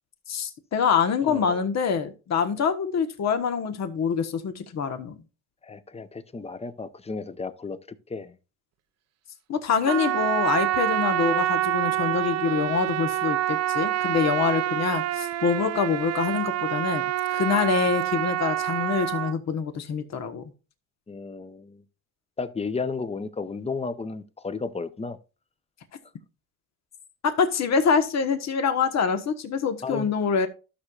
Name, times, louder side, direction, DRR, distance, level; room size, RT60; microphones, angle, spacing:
voice 1, 0.3-5.1 9.5-20.4 27.2-30.5, left 6 dB, 60° left, 1.3 m, -25 dB
voice 2, 1.2-1.6 5.6-7.8 8.1-8.3 21.1-21.8 22.4-25.2 29.8-30.1, left 4 dB, 20° left, 0.8 m, -33 dB
Trumpet, 9.8-19.3, right 13 dB, 60° right, 0.5 m, -27 dB
13.0 x 6.4 x 2.4 m
cardioid pair, 90°, 30 cm